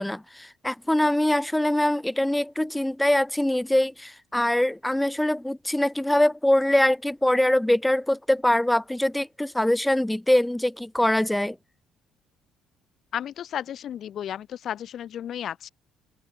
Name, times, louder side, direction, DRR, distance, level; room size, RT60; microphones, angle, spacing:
voice 1, 0.0-11.6, left 1 dB, 5° left, 1.3 m, -23 dB
voice 2, 13.1-15.7, left 10 dB, 50° left, 0.9 m, -33 dB
open air
cardioid pair, 140°, 0 cm